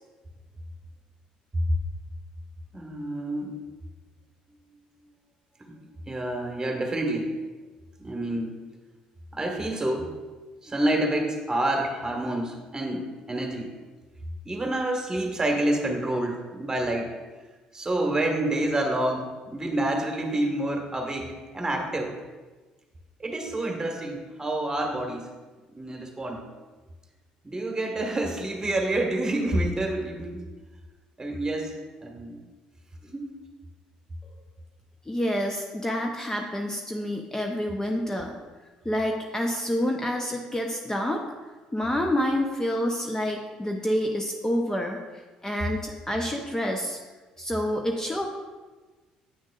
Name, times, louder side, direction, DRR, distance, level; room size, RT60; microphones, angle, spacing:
voice 1, 2.7-3.6 5.6-5.8 6.1-7.4 8.0-8.6 9.3-10.1 10.6-13.7 14.4-17.1 17.7-22.1 23.2-25.3 25.7-26.4 27.4-30.4 31.2-31.7 32.0-32.4 33.0-33.3, right 1 dB, 20° right, 2 dB, 1.4 m, -28 dB
voice 2, 35.1-38.3 38.8-41.2 41.7-45.0 45.4-47.0 47.4-48.3, equal, 15° left, 2 dB, 0.7 m, -28 dB
9.2 x 6.3 x 2.4 m, 1.3 s
hypercardioid pair, 55°, 3 cm